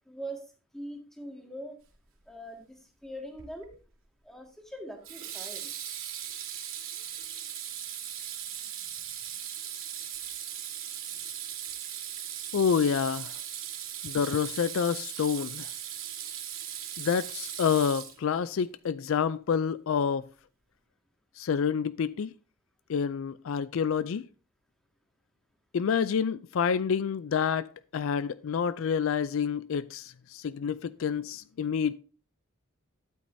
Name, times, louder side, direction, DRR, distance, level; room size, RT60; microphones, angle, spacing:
voice 1, 0.1-0.4 0.7-1.7 2.3-3.7 4.2-5.7, right 1 dB, ahead, 1.9 m, -42 dB
Water tap faucet / Sink (filling or washing), 3.4-3.7 5.0-18.5, right 10 dB, 65° right, 2.6 m, -38 dB
voice 2, 12.5-13.4 14.0-15.7 17.0-20.3 21.4-22.3 22.9-24.3 25.7-31.9, left 7 dB, 65° left, 0.4 m, -28 dB
13.0 x 8.5 x 2.7 m
head